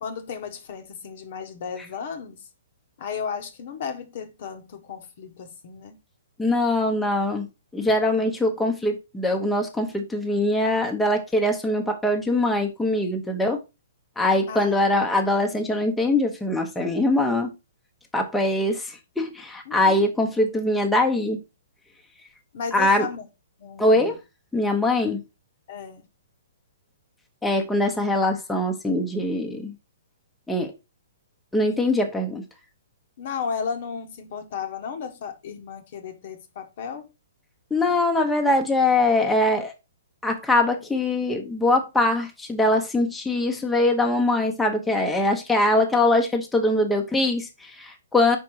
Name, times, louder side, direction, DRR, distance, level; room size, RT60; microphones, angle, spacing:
voice 1, 0.0-2.5 3.0-6.0 14.5-14.9 19.7-20.0 22.5-23.3 23.6-24.1 25.7-26.1 33.2-37.1, left 6 dB, 50° left, 1.1 m, -34 dB
voice 2, 6.4-7.5 7.7-13.6 14.2-17.5 18.1-21.4 22.7-23.1 23.8-24.2 24.5-25.2 27.4-29.7 30.5-30.7 31.5-32.4 37.7-39.7 40.2-48.4, left 1 dB, 5° left, 0.9 m, -22 dB
5.1 x 4.6 x 4.7 m
figure-of-eight pair, 120°, 0 cm